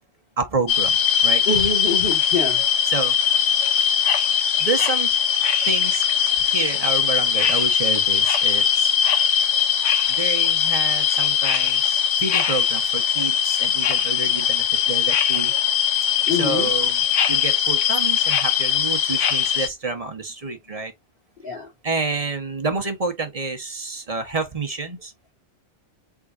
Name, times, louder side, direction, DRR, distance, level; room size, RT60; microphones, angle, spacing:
voice 1, 0.4-1.0 1.2-1.4 2.9-3.2 4.6-5.1 5.6-6.0 6.4-8.9 10.1-15.5 16.3-17.0 17.3-20.9 21.8-25.1, right 4 dB, 30° right, 1.0 m, -28 dB
sound 1, 0.7-19.7, left 8 dB, 75° left, 1.1 m, -20 dB
voice 2, 1.5-2.6 16.3-16.7 21.4-21.7, left 3 dB, 45° left, 2.2 m, -25 dB
4.7 x 3.8 x 2.4 m
omnidirectional pair, 1.3 m